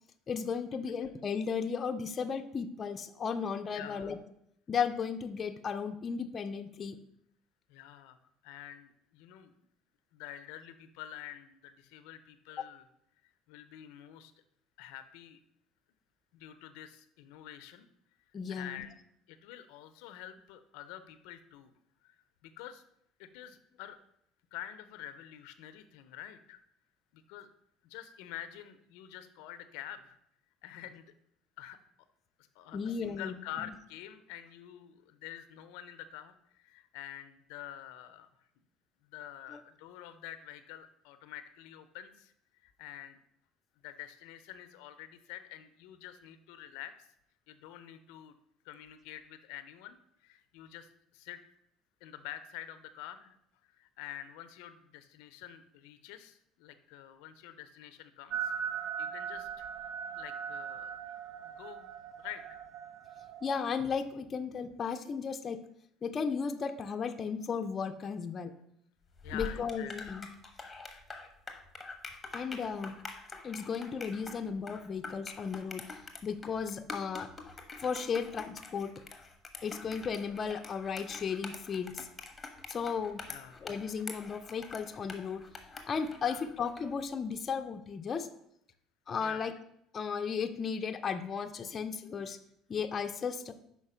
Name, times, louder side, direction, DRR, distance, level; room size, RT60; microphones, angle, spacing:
voice 1, 0.3-4.2 4.7-7.0 18.3-18.9 32.7-33.4 39.5-39.6 63.4-65.6 66.0-68.5 69.3-70.3 72.3-73.0 73.4-75.8 76.2-77.3 77.8-78.9 79.6-82.1 82.7-83.2 83.6-85.4 85.9-88.3 89.1-89.5 89.9-92.4 92.7-93.5, left 6 dB, 35° left, 6 dB, 0.6 m, -35 dB
voice 2, 3.7-4.2 7.7-8.2 8.4-9.5 10.1-12.8 13.5-14.3 14.8-15.4 16.3-17.9 18.5-18.9 19.3-21.7 22.0-22.8 23.2-24.0 24.5-26.6 27.1-27.5 27.8-30.2 30.6-31.1 31.6-31.8 32.5-38.3 39.0-42.3 42.6-43.2 43.8-47.1 47.5-48.3 48.6-51.4 52.0-53.4 53.6-58.5 58.8-59.7 60.1-61.0 61.4-61.9 62.2-62.6 69.2-69.9 83.3-83.7 86.2-86.5 89.2-89.5, left 11 dB, 85° left, 11 dB, 0.5 m, -47 dB
sound 1, 58.3-63.7, right 8 dB, 55° right, 0.4 m, -39 dB
sound 2, 69.1-86.9, left 3 dB, 15° left, 1.1 m, -46 dB
5.8 x 4.5 x 5.5 m, 0.74 s
cardioid pair, 115°, 0 cm